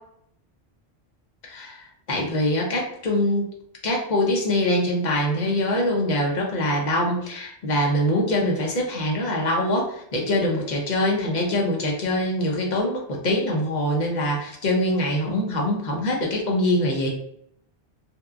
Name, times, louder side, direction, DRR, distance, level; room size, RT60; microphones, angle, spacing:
voice 1, 1.5-3.5 3.8-17.1, left 1 dB, 50° left, -1 dB, 0.6 m, -24 dB
2.7 x 2.2 x 2.3 m, 0.71 s
omnidirectional pair, 1.2 m